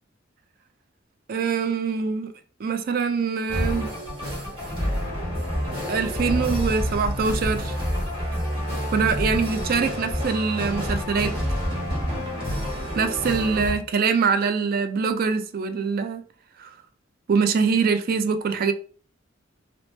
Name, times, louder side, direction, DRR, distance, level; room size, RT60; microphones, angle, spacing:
voice 1, 1.3-2.3 2.6-3.9 5.9-7.8 8.9-11.3 13.0-16.2 16.6-16.7 17.3-18.7, right 5 dB, 50° right, 0.3 m, -24 dB
sound 1, 3.5-13.7, equal, 30° right, 1.3 m, -28 dB
3.0 x 2.0 x 3.0 m
head